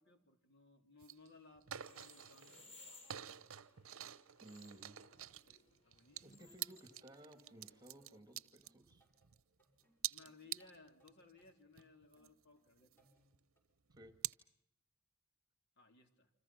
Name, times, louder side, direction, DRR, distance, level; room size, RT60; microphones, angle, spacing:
voice 1, 0.0-2.6 5.4-6.5 10.1-12.9 15.8-16.3, left 3 dB, 55° left, 5 dB, 3.7 m, -63 dB
sound 1, 1.0-1.3 1.6-2.7 3.1-9.4 9.8-11.1 11.5-11.6 11.8-13.4 13.9-14.3, right 12 dB, 70° right, 0.9 m, -47 dB
sound 2, 1.7-8.2, left 2 dB, 30° left, 4.5 m, -63 dB
voice 2, 4.4-5.0 6.2-9.0 14.0-14.1, right 1 dB, 20° right, 8 dB, 2.3 m, -58 dB
sound 3, 8.3-13.6, right 1 dB, 10° left, 6.8 m, -76 dB
29.0 x 26.5 x 5.9 m, 0.80 s
head